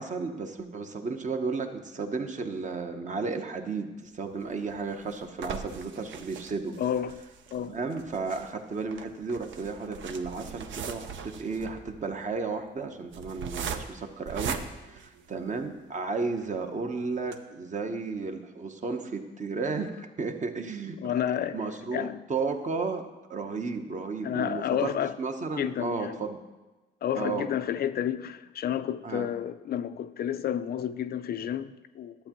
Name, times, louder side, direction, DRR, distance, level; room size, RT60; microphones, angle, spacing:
voice 1, 0.0-6.8 7.6-14.6 14.9-21.1 21.5-26.4 27.2-27.5 29.0-29.3, right 4 dB, 40° right, 0.9 m, -33 dB
sound 1, 4.4-15.8 16.3-16.4 16.7-16.8 17.2-17.3, right 6 dB, 70° right, 0.7 m, -40 dB
voice 2, 6.8-7.2 7.5-7.8 21.0-21.6 21.9-22.2 24.2-25.2 25.6-26.2 27.0-32.2, left 10 dB, 50° left, 0.4 m, -30 dB
11.5 x 7.9 x 3.0 m
cardioid pair, 90°, 20 cm